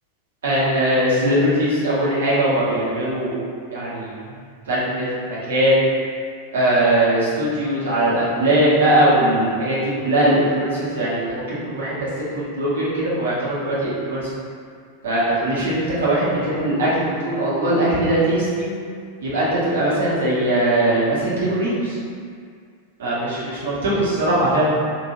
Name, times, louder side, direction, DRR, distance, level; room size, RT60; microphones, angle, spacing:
voice 1, 0.4-3.3 3.7-4.2 4.7-5.8 6.5-12.1 12.3-14.2 15.0-18.7 19.2-22.0 23.0-24.7, right 1 dB, 65° right, -8 dB, 1.1 m, -20 dB
3.7 x 2.6 x 3.0 m, 2.2 s
figure-of-eight pair, 90°, 0 cm